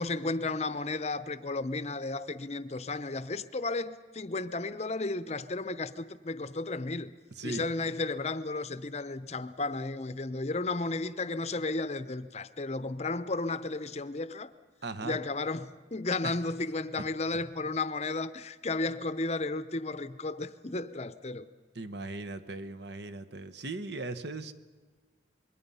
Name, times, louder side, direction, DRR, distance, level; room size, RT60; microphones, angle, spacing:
voice 1, 0.0-7.1 7.4-14.5 15.0-21.5, left 3 dB, 35° left, 0.7 m, -33 dB
voice 2, 7.4-7.9 14.8-15.2 16.2-16.3 21.7-24.5, right 2 dB, 60° right, 1.1 m, -38 dB
26.0 x 22.0 x 5.6 m
head